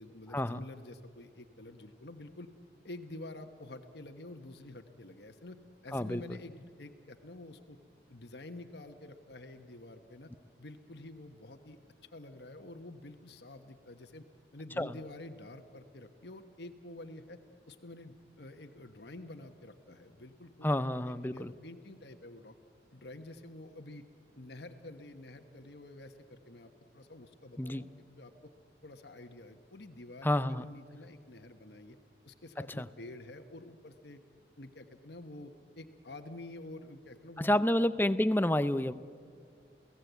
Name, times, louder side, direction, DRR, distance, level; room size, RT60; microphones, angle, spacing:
voice 1, 0.0-2.5 2.8-5.6 5.8-7.8 8.1-10.3 10.6-11.8 12.1-14.2 14.5-17.4 17.7-22.5 22.9-24.1 24.3-28.5 28.8-32.0 32.2-34.2 34.6-37.7, left 2 dB, 70° left, 6 dB, 1.2 m, -49 dB
voice 2, 20.6-21.5 27.6-27.8 30.2-30.6 32.8-32.9 37.4-38.9, left 1 dB, 10° left, 13 dB, 0.5 m, -29 dB
29.0 x 17.0 x 8.1 m, 2.3 s
head